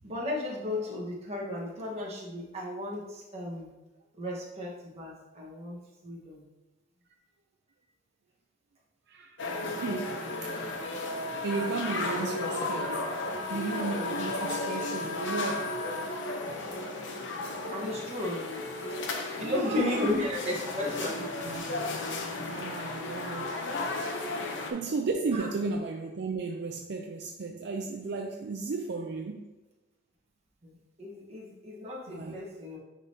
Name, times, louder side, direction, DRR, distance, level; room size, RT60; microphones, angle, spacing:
voice 1, 0.0-3.7 4.2-6.4 17.7-18.5 19.4-21.6 23.6-23.7 24.2-24.4 25.4-25.5 30.6-32.8, left 1 dB, 35° right, -4 dB, 1.3 m, -34 dB
voice 2, 9.1-9.4 9.8-13.0 13.5-15.8 19.4-20.2 21.2-21.7 22.1-23.5 24.7-29.5 32.1-32.4, right 3 dB, 65° right, 2 dB, 0.4 m, -35 dB
sound 1, 9.4-24.7, left 2 dB, 75° left, 0.8 m, -34 dB
9.5 x 3.5 x 2.8 m, 1.1 s
head